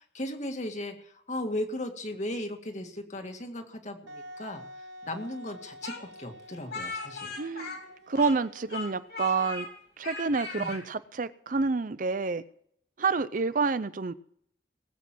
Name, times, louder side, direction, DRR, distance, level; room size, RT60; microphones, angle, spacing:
voice 1, 0.0-4.6 5.0-7.3 10.5-10.7, left 1 dB, 40° left, 5 dB, 2.0 m, -36 dB
Wind instrument woodwind instrument, 4.1-9.7, equal, 85° right, 1.1 m, -49 dB
Speech, 5.8-8.4 8.7-9.7 10.0-10.8, left 4 dB, 65° left, 3.7 m, -38 dB
voice 2, 7.4-7.8 8.1-9.7 10.0-12.4 13.0-14.1, right 4 dB, 45° right, 15 dB, 0.6 m, -28 dB
19.5 x 8.3 x 6.1 m, 0.67 s
head